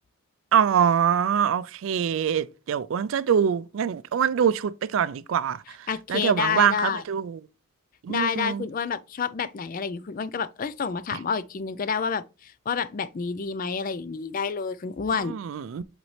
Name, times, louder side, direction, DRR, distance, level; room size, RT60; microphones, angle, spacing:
voice 1, 0.5-5.6 6.1-7.4 8.0-8.6 15.3-15.8, right 8 dB, 65° right, 0.3 m, -24 dB
voice 2, 5.9-7.0 8.1-15.3, left 6 dB, 40° left, 0.4 m, -29 dB
7.8 x 4.1 x 3.1 m
head